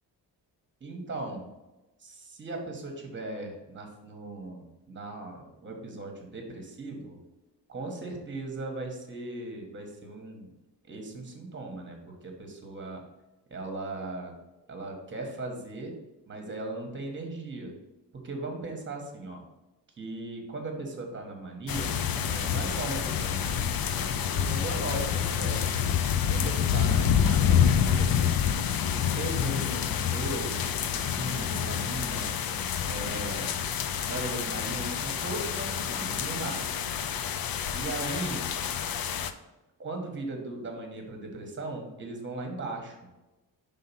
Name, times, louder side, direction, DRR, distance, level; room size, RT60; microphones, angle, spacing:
voice 1, 0.8-1.5 2.0-7.2 7.7-10.5 10.8-13.0 13.5-14.3 14.7-15.9 16.3-17.7 18.1-19.4 20.0-22.0 22.3-25.7 26.3-28.2 28.9-32.3 32.8-33.5 34.0-36.9 37.7-38.5 39.8-43.0, right 2 dB, 25° right, 2 dB, 1.3 m, -38 dB
sound 1, 21.7-39.3, left 8 dB, 55° left, 0.5 m, -28 dB
sound 2, 22.0-25.5 31.2-33.3, right 1 dB, 5° right, 0.9 m, -48 dB
5.6 x 3.8 x 5.6 m, 1.0 s
wide cardioid pair, 170°, 42 cm